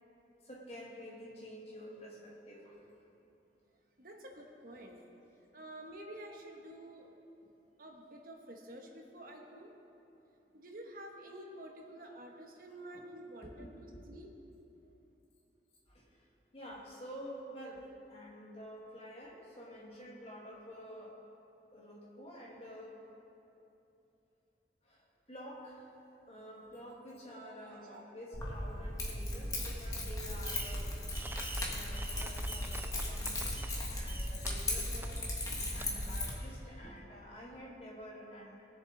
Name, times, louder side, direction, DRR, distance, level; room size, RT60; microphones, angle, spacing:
voice 1, 0.4-2.9 12.9-13.1 13.4-14.1 15.9-16.3 16.5-21.2 21.7-23.0 24.8-25.9 26.3-31.0 31.5-33.6 33.9-38.7, equal, 35° left, -3 dB, 1.9 m, -49 dB
voice 2, 4.0-5.0 5.5-7.1 7.8-9.7 10.5-14.3 27.4-28.0 33.9-34.3 35.0-35.1, right 1 dB, 55° right, 2 dB, 1.2 m, -50 dB
Keys jangling, 28.3-36.3, left 1 dB, 20° left, 1.4 m, -37 dB
Fireworks, 30.4-30.9 31.1-33.8 34.1-34.5 35.0-35.1 35.8-35.9, right 3 dB, 10° right, 0.4 m, -46 dB
19.0 x 7.2 x 4.0 m, 2.9 s
head